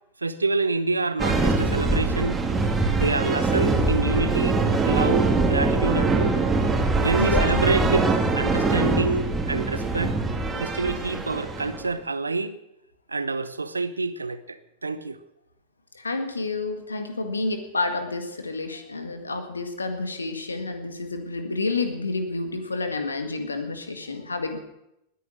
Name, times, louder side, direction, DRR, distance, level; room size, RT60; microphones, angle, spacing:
voice 1, 0.2-2.4 3.0-4.6 4.8-6.4 7.0-8.1 8.4-10.1 10.6-12.6 13.1-15.2, right 3 dB, 80° right, 14 dB, 0.8 m, -27 dB
sound 1, 1.2-11.9, right 3 dB, 15° right, 2.5 m, -23 dB
sound 2, 2.6-8.1, right 9 dB, 30° right, 2.2 m, -36 dB
voice 2, 7.2-7.5 15.9-24.6, left 3 dB, 75° left, 7 dB, 1.8 m, -29 dB
19.5 x 9.7 x 6.4 m, 0.86 s
figure-of-eight pair, 90°, 0 cm